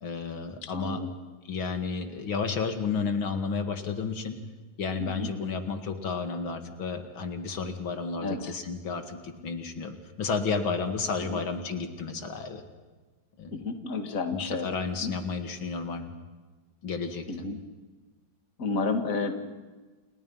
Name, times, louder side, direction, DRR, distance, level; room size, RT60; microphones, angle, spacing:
voice 1, 0.0-1.0 1.5-4.4 4.8-12.6 13.4-13.6 14.3-16.1 16.8-17.2, left 5 dB, 85° left, 7 dB, 2.9 m, -32 dB
voice 2, 0.6-1.1 5.0-5.3 8.2-8.5 11.3-11.4 13.5-14.7 15.0-15.1 17.3-17.6 18.6-19.3, left 3 dB, 45° left, 6 dB, 2.3 m, -31 dB
30.0 x 29.5 x 5.7 m, 1.3 s
omnidirectional pair, 2.1 m